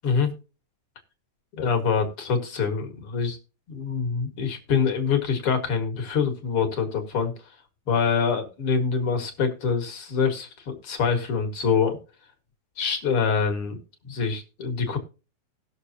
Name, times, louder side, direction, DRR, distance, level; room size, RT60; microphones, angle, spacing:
voice 1, 1.5-3.4 3.7-7.3 7.9-12.0 12.8-13.8 14.0-15.0, left 6 dB, 45° left, 4 dB, 2.2 m, -25 dB
19.0 x 6.7 x 2.8 m, 0.33 s
omnidirectional pair, 4.2 m